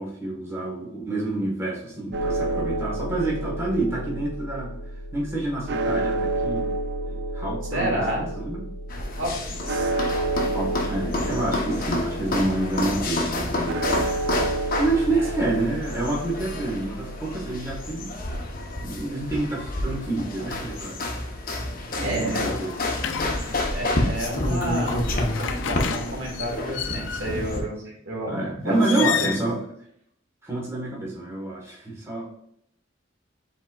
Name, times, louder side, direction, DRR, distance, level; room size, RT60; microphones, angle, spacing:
voice 1, 0.0-4.7 5.1-6.7 7.1-8.6 10.5-13.8 14.8-18.1 18.8-21.0 22.0-22.7 27.2-27.3 27.8-27.9 28.3-29.6 30.4-32.4, right 2 dB, 15° right, -4 dB, 1.2 m, -28 dB
sound 1, 2.1-20.0, right 2 dB, 55° right, 0.4 m, -31 dB
voice 2, 7.7-8.3 9.2-9.9 15.1-15.4 22.0-22.5 23.5-25.0 25.4-28.3 28.7-29.3, right 1 dB, 85° right, -2 dB, 1.8 m, -30 dB
sound 2, 8.9-27.6, left 2 dB, 45° left, 0.8 m, -29 dB
sound 3, 22.1-23.8 24.6-27.5 28.7-29.4, left 7 dB, 70° left, 0.4 m, -32 dB
5.2 x 3.8 x 2.3 m, 0.71 s
head